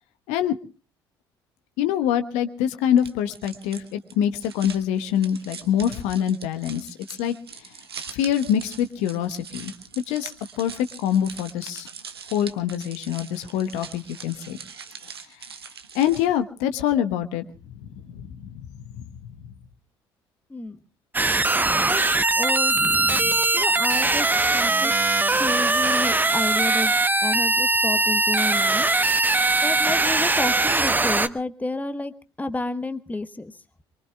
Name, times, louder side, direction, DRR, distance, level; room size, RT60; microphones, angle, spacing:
voice 1, 1.8-7.3 8.1-9.7 10.1-10.3 10.6-11.9 12.3-14.6 15.9-17.4 17.7-17.8 18.1-18.5 19.0-19.1, left 10 dB, 65° left, 9 dB, 1.1 m, -25 dB
sound 1, 3.0-16.4, right 6 dB, 85° right, 1.0 m, -42 dB
voice 2, 20.5-20.8 21.9-22.0 22.4-25.1 25.4-26.9 27.2-28.9 29.6-32.1 32.4-33.5, left 2 dB, 10° left, 11 dB, 1.2 m, -31 dB
sound 2, 21.1-31.3, right 2 dB, 15° right, 1.0 m, -21 dB
24.5 x 23.0 x 2.3 m, 0.35 s
figure-of-eight pair, 50°, 13 cm